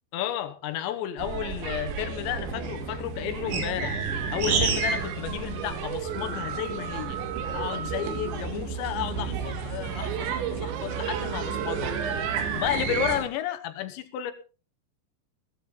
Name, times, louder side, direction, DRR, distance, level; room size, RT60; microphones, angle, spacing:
voice 1, 0.1-4.0 4.3-7.2 7.5-12.2 12.5-14.3, left 11 dB, 90° left, 3.4 m, -32 dB
sound 1, 1.2-13.2, right 6 dB, 90° right, 4.0 m, -33 dB
sound 2, 2.8-5.1 5.4-8.5 8.9-13.2, right 5 dB, 65° right, 4.6 m, -32 dB
17.0 x 13.5 x 3.8 m
omnidirectional pair, 5.0 m